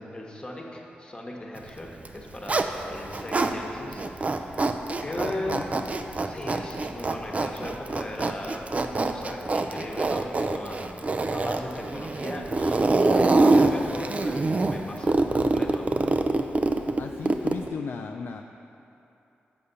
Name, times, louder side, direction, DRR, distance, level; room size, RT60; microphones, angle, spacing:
voice 1, 0.0-4.7 5.0-5.7 6.3-15.9, left 1 dB, 25° left, -1 dB, 1.2 m, -38 dB
Zipper (clothing), 1.9-3.5 3.9-17.7, right 2 dB, 35° right, 0.4 m, -25 dB
voice 2, 5.0-5.9 16.9-18.4, left 5 dB, 70° left, 3 dB, 0.3 m, -36 dB
6.7 x 5.0 x 6.9 m, 2.8 s
cardioid pair, 70°, 4 cm